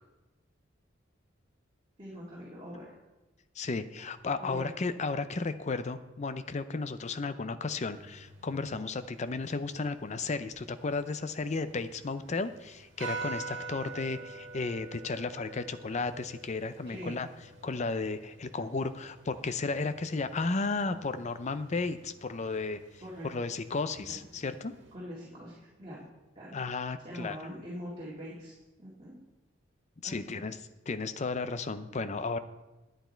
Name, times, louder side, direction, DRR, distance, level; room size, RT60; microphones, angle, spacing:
voice 1, 2.0-3.0 4.4-4.7 16.9-17.2 23.0-23.3 24.0-24.2 24.9-26.0 26.4-26.5 27.0-29.2 30.0-30.6, equal, 30° right, -6 dB, 2.1 m, -43 dB
voice 2, 3.6-17.3 17.6-22.8 23.2-24.7 26.5-27.4 30.0-30.6 30.9-32.4, left 3 dB, 35° left, 12 dB, 0.5 m, -34 dB
sound 1, 7.9-25.0, right 4 dB, 70° right, 1.8 m, -47 dB
10.5 x 9.1 x 4.5 m, 1.1 s
head